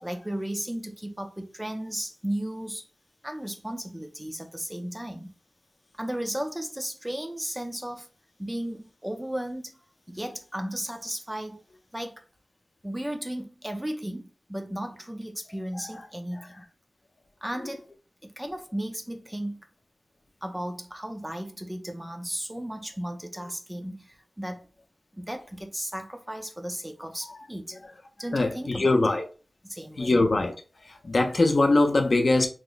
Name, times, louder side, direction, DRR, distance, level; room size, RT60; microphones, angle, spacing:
voice 1, 0.0-2.8 3.2-5.3 6.0-8.1 8.4-9.7 10.1-11.6 11.9-12.2 12.8-16.6 17.4-17.9 18.2-19.6 20.4-24.7 25.1-27.8 28.2-29.2 29.6-30.2, right 1 dB, 10° right, 0.5 m, -35 dB
voice 2, 28.3-29.2 30.0-30.5 30.9-32.5, left 2 dB, 50° left, 0.6 m, -22 dB
3.0 x 2.1 x 3.9 m
wide cardioid pair, 85°, 0 cm